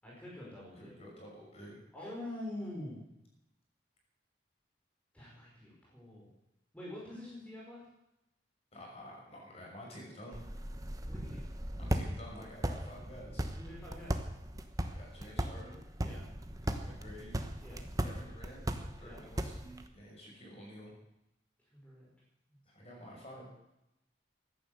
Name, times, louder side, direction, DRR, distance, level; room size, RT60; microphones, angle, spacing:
voice 1, 0.0-1.0 1.9-3.0 5.1-6.3 6.7-7.8 11.1-11.8 13.6-14.2 16.0-16.2 17.6-17.9 19.0-19.2 21.7-22.1, left 1 dB, 10° left, -5 dB, 5.0 m, -46 dB
voice 2, 0.8-1.8 8.7-10.4 11.8-13.5 14.8-15.8 16.6-17.4 18.0-18.6 19.0-20.9 22.7-23.5, equal, 35° left, -1 dB, 6.0 m, -50 dB
sound 1, 10.3-19.9, right 1 dB, 20° right, 1.1 m, -38 dB
15.0 x 11.0 x 7.9 m, 0.86 s
head